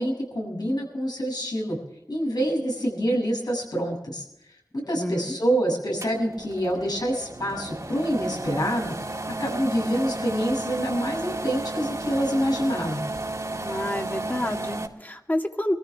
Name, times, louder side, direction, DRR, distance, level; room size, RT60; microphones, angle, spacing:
voice 1, 0.0-1.8 2.1-4.2 4.7-9.0 9.4-13.0, equal, 80° left, 0 dB, 7.0 m, -26 dB
voice 2, 4.9-5.4 13.6-15.7, left 1 dB, 25° left, 3 dB, 2.0 m, -29 dB
sound 1, 6.0-14.9, right 2 dB, 55° right, 2.1 m, -33 dB
25.0 x 14.5 x 3.5 m, 0.86 s
wide cardioid pair, 50°, 7 cm